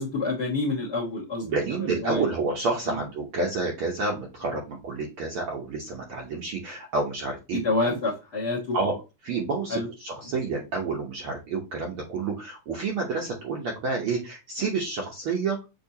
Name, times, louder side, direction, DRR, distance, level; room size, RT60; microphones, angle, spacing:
voice 1, 0.0-1.5 1.8-2.3 2.9-3.0 7.5-8.8 9.7-9.9, left 2 dB, 55° left, 1.2 m, -28 dB
voice 2, 1.4-8.0 8.7-8.9 9.2-15.6, right 4 dB, 70° right, 1.3 m, -29 dB
6.7 x 2.8 x 2.7 m
omnidirectional pair, 3.3 m